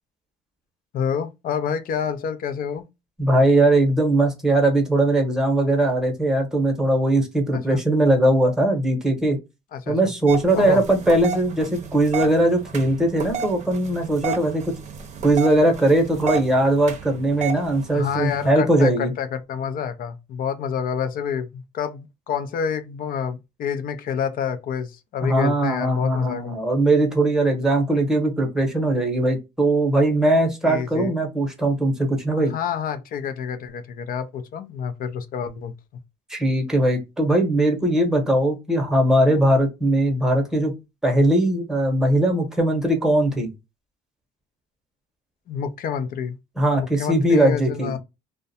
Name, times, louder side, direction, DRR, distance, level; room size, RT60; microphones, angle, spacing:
voice 1, 0.9-2.8 7.5-7.8 9.7-10.0 10.5-10.8 17.9-26.5 30.6-31.1 32.4-35.7 45.5-46.4 46.8-48.0, left 7 dB, 55° left, 0.5 m, -28 dB
voice 2, 3.2-9.4 9.9-14.7 15.2-19.1 25.2-32.5 36.3-40.7 41.0-43.5 46.6-48.0, right 1 dB, 5° right, 0.9 m, -20 dB
sound 1, 10.3-18.5, right 5 dB, 45° right, 0.6 m, -33 dB
2.3 x 2.1 x 2.6 m
cardioid pair, 110°, 17 cm